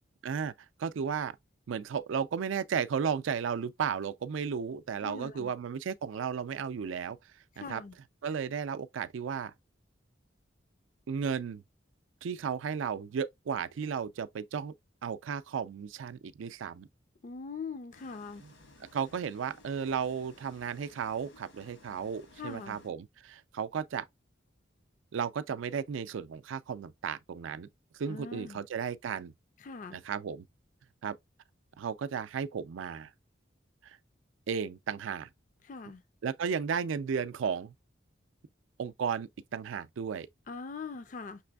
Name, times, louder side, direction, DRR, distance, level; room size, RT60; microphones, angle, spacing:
voice 1, 0.2-0.5 0.8-1.4 1.7-7.2 7.6-7.8 8.2-9.5 11.1-11.6 12.2-14.7 15.0-16.9 18.9-24.1 25.1-27.7 27.9-29.3 29.9-30.5 31.0-31.2 31.8-33.1 33.8-34.0 34.5-35.3 36.2-37.7 38.8-40.3, right 6 dB, 85° right, 0.4 m, -34 dB
voice 2, 5.0-5.5 7.5-7.9 17.2-18.4 22.4-22.8 28.1-28.6 29.6-30.0 35.6-36.0 40.5-41.4, left 4 dB, 40° left, 0.4 m, -42 dB
sound 1, 17.9-22.9, left 2 dB, 80° left, 1.4 m, -58 dB
6.0 x 3.3 x 2.2 m
head